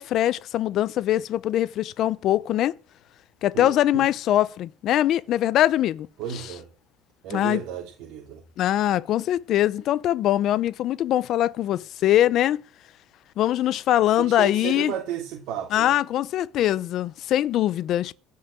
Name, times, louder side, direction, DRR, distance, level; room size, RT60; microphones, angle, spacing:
voice 1, 0.0-2.7 3.4-6.1 6.3-6.4 7.3-7.6 8.6-12.6 13.4-14.9 15.7-18.1, left 12 dB, 45° left, 0.6 m, -22 dB
voice 2, 3.5-4.0 6.2-6.7 7.2-8.4 14.2-15.9, right 9 dB, 60° right, 3.3 m, -33 dB
16.5 x 5.7 x 8.8 m
cardioid pair, 160°, 0 cm